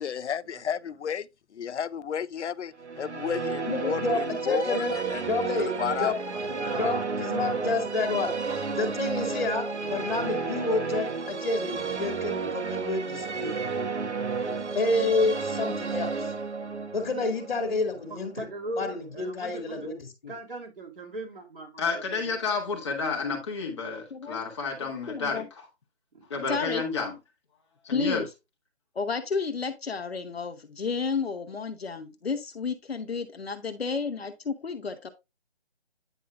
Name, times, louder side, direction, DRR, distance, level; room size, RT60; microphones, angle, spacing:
voice 1, 0.0-5.2 5.7-6.1, left 8 dB, 85° left, 0.6 m, -32 dB
sound 1, 2.8-18.8, right 4 dB, 90° right, 1.1 m, -32 dB
voice 2, 3.6-6.2 6.7-8.3 8.7-13.5 14.7-16.3 16.9-18.5 18.8-20.3, left 3 dB, 45° left, 2.2 m, -29 dB
voice 3, 6.3-9.1 18.1-19.9 20.3-22.4 26.1-26.2, right 2 dB, 55° right, 2.4 m, -39 dB
voice 4, 21.8-25.4 26.3-27.1 27.8-28.2, left 4 dB, 25° left, 1.7 m, -30 dB
voice 5, 24.8-25.5 26.5-26.8 27.9-28.3 28.9-35.1, left 5 dB, 65° left, 1.0 m, -31 dB
9.3 x 5.5 x 2.4 m
hypercardioid pair, 170°, 33 cm